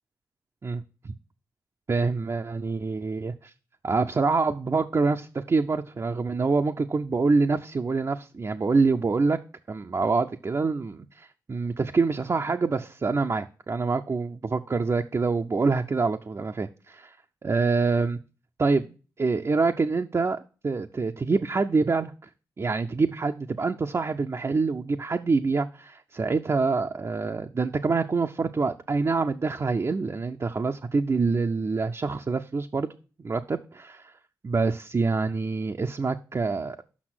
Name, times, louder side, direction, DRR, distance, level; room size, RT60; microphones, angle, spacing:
voice 1, 1.9-3.5 3.8-9.4 9.7-17.2 17.4-18.2 18.6-18.9 19.2-22.1 22.6-32.9 33.2-34.1 34.4-36.8, right 4 dB, 40° right, 0.5 m, -26 dB
6.2 x 5.6 x 6.1 m
supercardioid pair, 45°, 8 cm